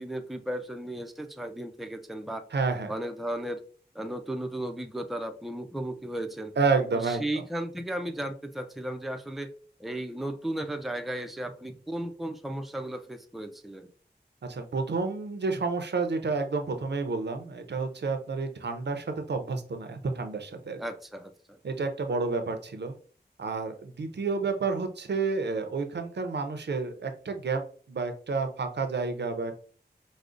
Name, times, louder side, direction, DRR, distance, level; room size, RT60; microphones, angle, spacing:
voice 1, 0.0-2.4 2.9-3.6 3.9-6.5 6.9-13.9 20.8-21.6, right 1 dB, ahead, 7 dB, 0.4 m, -35 dB
voice 2, 2.5-2.9 6.6-7.4 14.4-20.8 21.6-22.9 23.4-27.6 27.9-29.5, right 4 dB, 80° right, 7 dB, 0.5 m, -30 dB
4.9 x 2.0 x 2.5 m, 0.42 s
wide cardioid pair, 55°, 17 cm